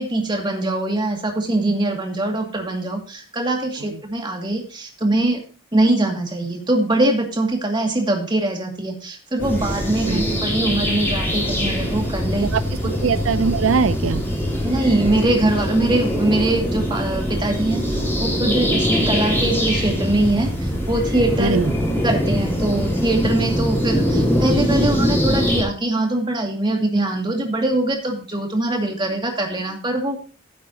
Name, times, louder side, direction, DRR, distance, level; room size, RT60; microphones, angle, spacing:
voice 1, 0.0-5.4 5.7-12.5 12.8-12.9 14.6-21.6 22.0-30.2, right 2 dB, 25° right, 2 dB, 2.3 m, -22 dB
sound 1, 9.4-25.6, equal, 10° left, 3.3 m, -22 dB
voice 2, 13.0-14.2 21.4-21.7, right 5 dB, 80° right, 13 dB, 0.5 m, -20 dB
15.5 x 8.1 x 2.9 m, 0.36 s
head